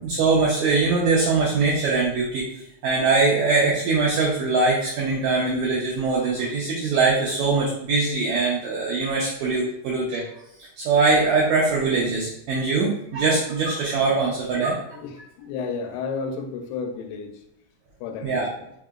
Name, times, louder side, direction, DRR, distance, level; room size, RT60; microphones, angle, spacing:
voice 1, 0.0-2.4 2.8-10.2 10.8-14.7 18.2-18.5, right 3 dB, 85° right, -4 dB, 1.6 m, -22 dB
voice 2, 14.9-17.4 18.0-18.7, left 5 dB, 85° left, 4 dB, 2.3 m, -32 dB
5.2 x 2.8 x 2.4 m, 0.80 s
omnidirectional pair, 4.0 m